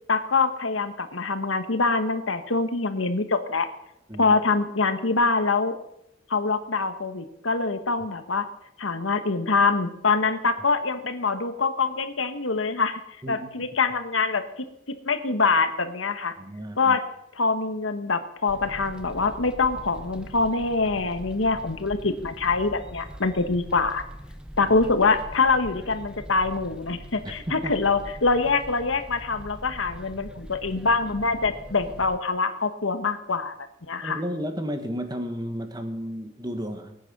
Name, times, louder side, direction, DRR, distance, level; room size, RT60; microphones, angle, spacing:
voice 1, 0.1-3.7 4.2-5.7 6.3-8.4 8.8-13.0 13.3-14.4 15.0-16.3 16.8-17.0 17.4-24.0 24.6-33.5 33.9-34.2, left 4 dB, 85° left, 9 dB, 1.4 m, -24 dB
voice 2, 13.2-13.7 16.4-17.0 24.7-24.8 27.2-27.7 34.0-37.0, equal, 20° right, 7 dB, 1.4 m, -33 dB
sound 1, 18.5-32.2, equal, 5° right, 0.8 m, -42 dB
20.5 x 9.2 x 6.1 m, 0.80 s
head